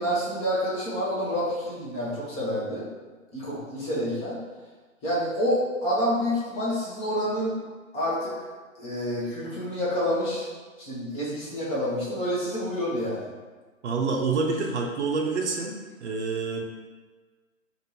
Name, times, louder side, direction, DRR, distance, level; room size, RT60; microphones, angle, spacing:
voice 1, 0.0-2.9 3.3-4.4 5.0-7.5 7.9-8.3 8.8-10.5 10.8-13.3, equal, 15° left, -7 dB, 0.8 m, -28 dB
voice 2, 13.8-16.6, right 4 dB, 55° right, 1 dB, 0.6 m, -27 dB
4.9 x 2.5 x 2.8 m, 1.4 s
figure-of-eight pair, 120°, 41 cm